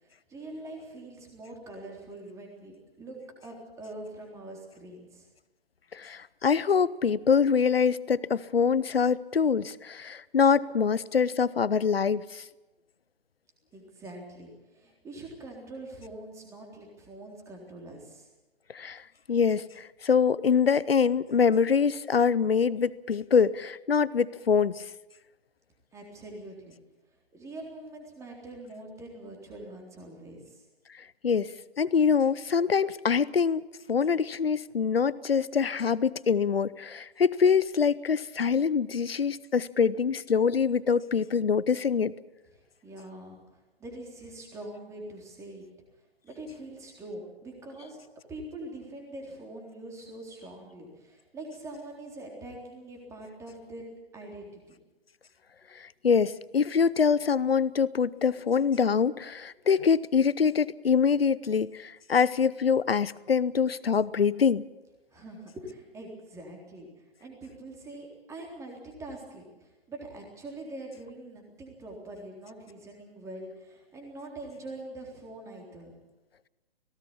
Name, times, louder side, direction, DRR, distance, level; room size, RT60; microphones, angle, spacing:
voice 1, 0.0-5.3 13.7-18.3 25.9-26.8 27.3-30.6 42.5-45.6 46.2-48.0 48.3-53.8 54.1-54.6 65.1-75.9, right 1 dB, 10° right, 1 dB, 3.7 m, -44 dB
voice 2, 5.9-12.4 18.7-19.0 19.3-24.8 31.2-33.6 33.9-42.1 55.8-64.6, left 6 dB, 70° left, 20 dB, 0.8 m, -24 dB
19.5 x 17.5 x 8.6 m, 1.1 s
figure-of-eight pair, 130°, 31 cm